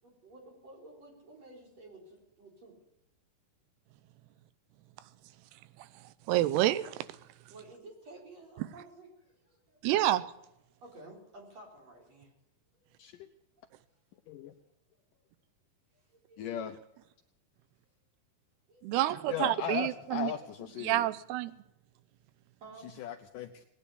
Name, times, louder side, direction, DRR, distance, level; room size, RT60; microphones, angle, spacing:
voice 1, 0.0-2.7 7.5-9.8 10.8-12.3 12.7-12.9 13.7-13.8 15.9-16.5 18.7-18.8 22.6-22.9, right 2 dB, 40° right, 4.9 m, -53 dB
voice 2, 6.3-7.1 9.8-10.3 18.8-20.3 20.8-21.5, right 14 dB, 90° right, 2.8 m, -28 dB
voice 3, 16.4-16.8 19.3-21.1 23.0-23.7, left 9 dB, 75° left, 2.0 m, -37 dB
19.5 x 9.9 x 7.0 m
omnidirectional pair, 4.6 m